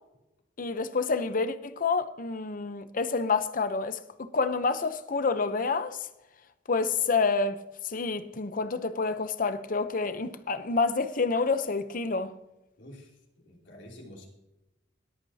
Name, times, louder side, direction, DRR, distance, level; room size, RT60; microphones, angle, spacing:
voice 1, 0.6-6.1 6.7-7.6 7.8-12.3, left 4 dB, 50° left, 0.8 m, -28 dB
voice 2, 12.8-14.3, left 1 dB, 80° left, 3.2 m, -49 dB
21.0 x 8.6 x 2.8 m
head